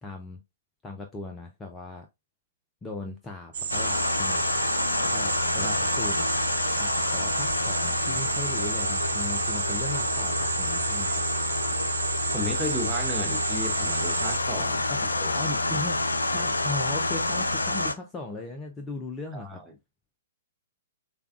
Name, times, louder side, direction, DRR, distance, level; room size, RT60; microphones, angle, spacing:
voice 1, 0.0-0.4 0.8-2.1 2.8-4.5 5.1-5.7 6.0-6.3 6.8-11.2 14.9-15.0 15.3-19.6, left 2 dB, 15° left, 0.5 m, -38 dB
sound 1, 3.5-14.4, right 6 dB, 55° right, 1.0 m, -31 dB
sound 2, 3.7-17.9, left 2 dB, 80° left, 0.4 m, -28 dB
voice 2, 5.6-5.9 12.3-14.8 15.2-15.3 19.3-19.7, left 1 dB, 10° right, 1.0 m, -34 dB
6.7 x 2.3 x 2.4 m
figure-of-eight pair, 115°, 0 cm